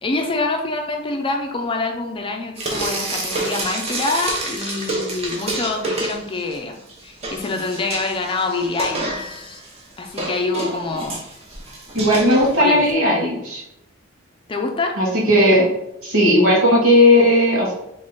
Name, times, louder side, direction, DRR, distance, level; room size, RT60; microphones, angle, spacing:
voice 1, 0.0-9.6 10.0-11.2 12.6-12.9 14.5-14.9, left 3 dB, 25° left, 3 dB, 0.4 m, -25 dB
Frying (food), 2.6-6.6 6.9-12.9, right 2 dB, 30° right, 0.8 m, -28 dB
voice 2, 11.9-13.6 15.0-15.6 16.0-17.7, left 1 dB, 85° right, -4 dB, 1.5 m, -15 dB
3.5 x 3.1 x 3.9 m, 0.84 s
head